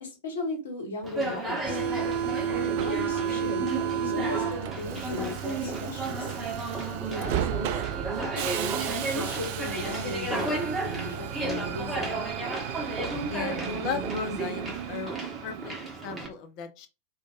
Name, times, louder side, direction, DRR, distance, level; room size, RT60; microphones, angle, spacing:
voice 1, 0.0-1.8 2.5-3.6 4.0-6.4 7.1-7.8 8.2-12.3, left 2 dB, 65° left, 1.2 m, -37 dB
Conversation, 1.0-16.3, right 2 dB, 10° right, 1.0 m, -33 dB
Subway metro underground, 1.6-16.0, right 9 dB, 50° right, 0.3 m, -33 dB
voice 2, 13.3-16.9, left 6 dB, 40° left, 0.6 m, -36 dB
3.8 x 2.4 x 2.4 m
figure-of-eight pair, 90°, 0 cm